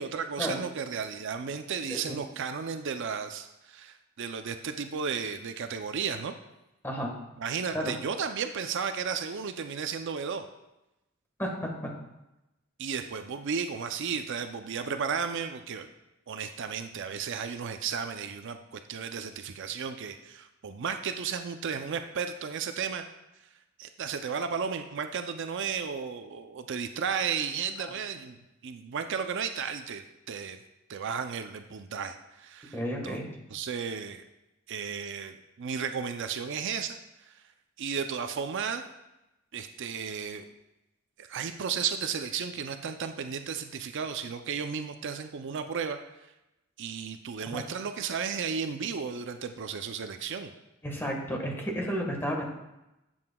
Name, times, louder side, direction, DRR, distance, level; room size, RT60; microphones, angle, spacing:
voice 1, 0.0-6.3 7.4-10.5 12.8-15.9 16.3-23.1 23.8-30.6 30.9-33.2 33.5-34.2 34.7-37.3 37.8-38.8 39.5-40.4 41.2-46.3 46.8-50.5, right 6 dB, 60° right, 8 dB, 0.5 m, -34 dB
voice 2, 11.4-11.9 32.7-33.3 47.5-47.6 50.8-52.4, equal, 10° left, 0 dB, 1.4 m, -32 dB
11.0 x 7.8 x 2.3 m, 0.93 s
head